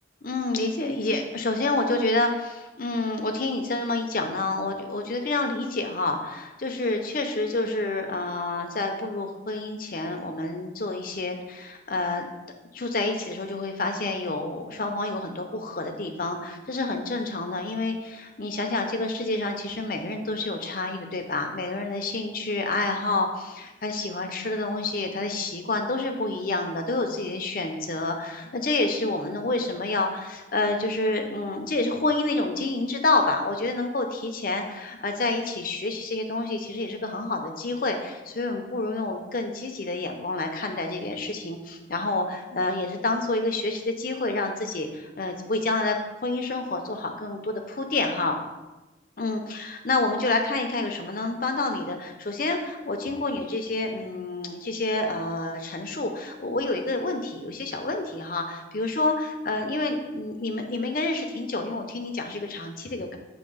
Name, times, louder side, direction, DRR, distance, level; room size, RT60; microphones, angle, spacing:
voice 1, 0.2-12.3 12.7-46.0 46.2-48.4 49.2-63.2, left 2 dB, 50° left, 4 dB, 0.7 m, -28 dB
7.8 x 2.9 x 5.5 m, 1.1 s
head